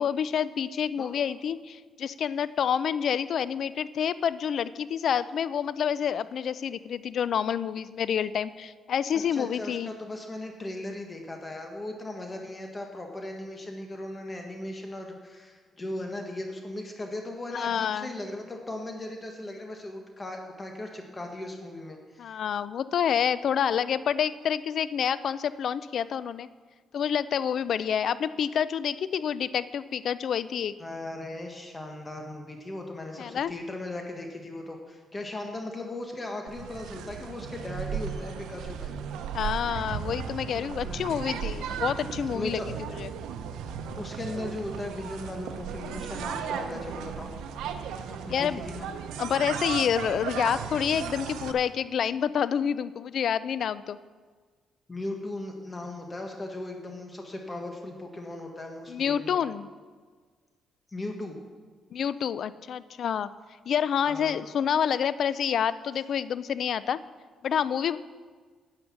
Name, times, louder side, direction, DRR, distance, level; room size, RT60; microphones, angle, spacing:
voice 1, 0.0-9.9 17.5-18.1 22.2-26.5 26.9-30.7 33.2-33.5 39.3-42.6 43.0-43.1 48.3-48.6 49.2-54.0 58.9-59.7 61.9-63.3 63.7-67.0 67.4-68.0, left 8 dB, 60° left, 16 dB, 0.4 m, -28 dB
voice 2, 9.1-22.4 30.8-38.9 40.4-40.5 40.8-41.4 42.3-42.7 43.9-47.3 48.1-48.9 54.9-59.4 60.9-61.3 64.1-64.5, left 1 dB, 25° left, 3 dB, 1.5 m, -38 dB
sound 1, 36.5-51.5, right 7 dB, 90° right, 0.7 m, -35 dB
9.7 x 9.4 x 6.1 m, 1.5 s
cardioid pair, 90°, 0 cm